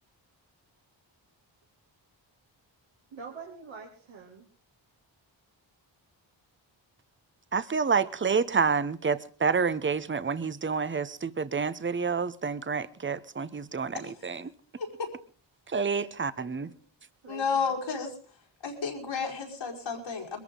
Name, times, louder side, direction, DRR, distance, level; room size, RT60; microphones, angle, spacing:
voice 1, 3.1-4.5 16.0-16.1 16.6-16.8 17.2-17.8, right 5 dB, 80° right, 2.8 m, -45 dB
voice 2, 7.5-14.5 15.7-16.7, right 5 dB, 25° right, 0.9 m, -28 dB
voice 3, 14.8-15.1 17.3-18.1 18.6-20.4, left 5 dB, 85° left, 5.1 m, -32 dB
22.0 x 14.5 x 3.9 m
cardioid pair, 80°, 46 cm